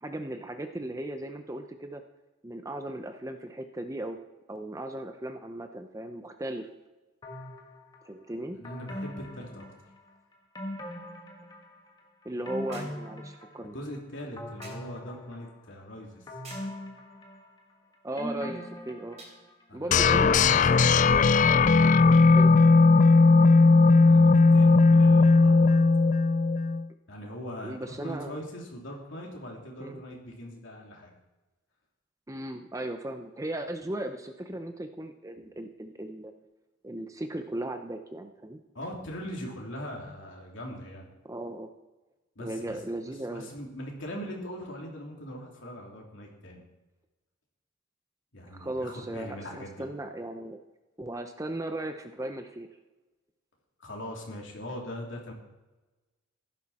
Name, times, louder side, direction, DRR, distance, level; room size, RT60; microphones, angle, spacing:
voice 1, 0.0-2.0 2.4-4.2 4.5-6.7 8.0-8.6 12.2-13.7 18.0-19.2 19.7-20.6 22.4-22.5 27.6-28.4 29.8-30.0 32.3-36.3 36.8-38.6 41.2-41.7 42.4-43.5 48.5-50.6 51.0-52.7, right 1 dB, 15° right, 7 dB, 0.6 m, -37 dB
sound 1, 7.2-8.0 8.6-10.1 10.6-11.9 12.2-13.9 14.4-15.7 16.3-17.7 18.2-21.4 21.8-21.9, left 1 dB, 20° left, 1.5 m, -40 dB
voice 2, 8.6-9.7 13.6-16.3 19.7-20.1 20.4-22.8 24.0-25.8 27.1-31.1 38.7-41.1 42.3-42.7 43.3-46.6 48.3-49.8 53.8-55.3, equal, 60° left, -1 dB, 3.2 m, -41 dB
sound 2, 12.7-13.1 14.6-14.9 16.4-16.8 19.2-19.4 20.4-20.7 21.8-21.9, right 3 dB, 30° right, 3.1 m, -48 dB
sound 3, 19.9-26.8, left 3 dB, 35° left, 0.3 m, -18 dB
16.0 x 11.5 x 4.3 m, 1.1 s
head